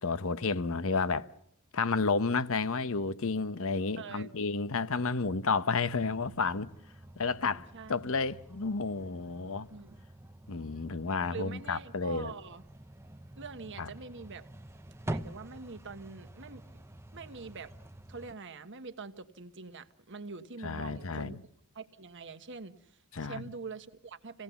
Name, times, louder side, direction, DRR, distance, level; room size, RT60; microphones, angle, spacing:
voice 1, 0.0-1.3 1.7-6.7 7.2-9.7 10.5-12.3 13.8-13.9 20.6-21.3 23.1-23.4, left 4 dB, 65° left, 0.9 m, -31 dB
voice 2, 4.0-4.3 7.4-8.2 9.7-9.9 11.3-12.6 13.4-14.5 15.0-16.8 17.1-17.7 18.1-21.4 21.7-24.4, right 4 dB, 55° right, 1.3 m, -45 dB
sound 1, 6.0-18.3, right 1 dB, 10° right, 0.8 m, -46 dB
28.0 x 18.0 x 7.0 m
head